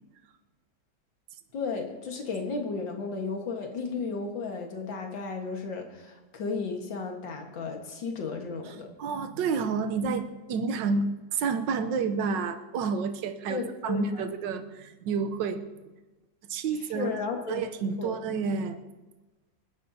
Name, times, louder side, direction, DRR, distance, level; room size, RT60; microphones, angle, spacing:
voice 1, 1.5-8.9 13.5-14.3 16.9-17.6 18.0-18.1, left 4 dB, 85° left, 3 dB, 2.2 m, -34 dB
voice 2, 8.6-15.9 16.5-17.1 17.5-18.8, right 5 dB, 80° right, 8 dB, 1.5 m, -30 dB
27.0 x 11.0 x 2.8 m, 1.1 s
omnidirectional pair, 2.0 m